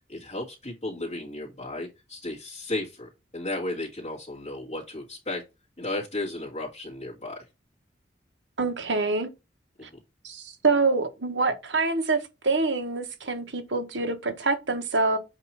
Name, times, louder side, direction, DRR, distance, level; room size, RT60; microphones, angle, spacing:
voice 1, 0.1-5.4 5.8-7.4 9.8-9.9, left 2 dB, 35° left, 2.3 m, -34 dB
voice 2, 8.6-9.3 10.2-15.2, right 3 dB, 75° right, 1.5 m, -26 dB
8.1 x 3.0 x 5.9 m
head